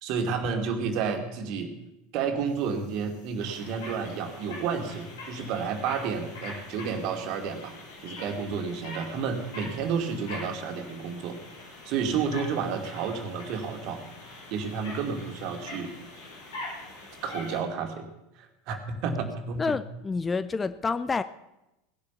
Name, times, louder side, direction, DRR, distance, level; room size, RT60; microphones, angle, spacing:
voice 1, 0.0-1.7 2.1-7.7 8.0-11.4 11.8-14.1 14.5-15.9 17.2-18.1 18.4-19.7, right 6 dB, 45° right, 6 dB, 2.5 m, -31 dB
sound 1, 2.5-17.6, left 2 dB, 65° left, 7.0 m, -44 dB
voice 2, 19.6-21.2, left 4 dB, 15° left, 14 dB, 0.6 m, -28 dB
18.5 x 10.5 x 7.0 m, 0.93 s
figure-of-eight pair, 80°, 0 cm